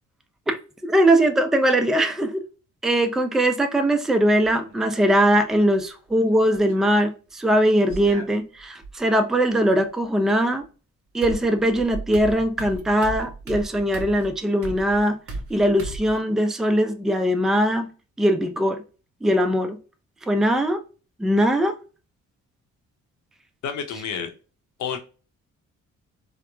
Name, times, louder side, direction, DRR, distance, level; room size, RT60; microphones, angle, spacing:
voice 1, 0.9-2.4 2.8-10.6 11.1-15.2 15.5-17.9 18.2-18.8 19.2-19.8 20.3-20.8 21.2-21.8, right 1 dB, ahead, 0.3 m, -21 dB
sound 1, 4.4-5.0 6.3-6.9 7.9-8.9 10.6-10.7 11.2-16.2, right 2 dB, 50° right, 0.8 m, -36 dB
voice 2, 23.6-24.3 24.8-25.0, left 7 dB, 70° left, 0.7 m, -29 dB
2.9 x 2.1 x 2.2 m
cardioid pair, 90°, 30 cm